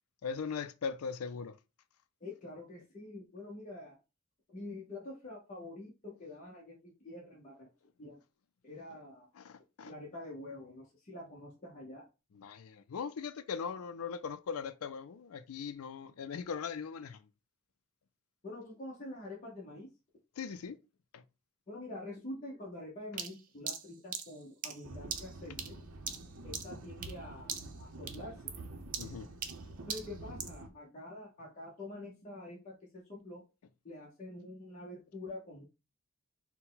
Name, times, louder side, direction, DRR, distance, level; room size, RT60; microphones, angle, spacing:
voice 1, 0.2-1.6 9.3-9.9 12.3-17.2 20.4-20.8 21.1-21.2 29.0-29.3, left 6 dB, 85° left, 0.4 m, -40 dB
voice 2, 2.2-4.0 4.5-7.7 8.0-8.2 8.6-9.3 9.8-12.0 18.4-19.9 21.7-25.8 26.4-28.3 29.9-33.4 33.8-35.7, left 1 dB, 40° left, 0.9 m, -46 dB
sound 1, 23.2-27.2 27.5-27.8 28.1-30.6, right 7 dB, 40° right, 0.6 m, -41 dB
sound 2, 24.8-30.7, right 2 dB, 80° right, 0.7 m, -48 dB
4.3 x 2.2 x 3.8 m
head